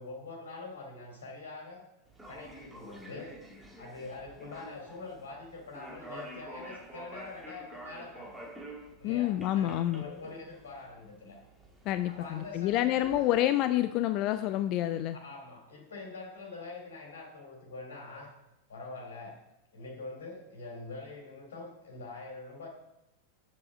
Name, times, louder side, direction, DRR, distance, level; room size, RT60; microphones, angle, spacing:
voice 1, 0.0-1.8 2.3-3.3 3.8-8.3 9.0-11.4 12.1-13.4 15.1-18.3 18.7-19.4 19.7-22.7, left 3 dB, 65° left, 0 dB, 2.5 m, -44 dB
sound 1, 2.1-13.4, right 1 dB, 10° right, 1.5 m, -49 dB
voice 2, 9.0-10.0 11.9-15.2, left 13 dB, 40° left, 11 dB, 0.3 m, -28 dB
7.4 x 6.2 x 6.1 m, 0.90 s
figure-of-eight pair, 90°, 0 cm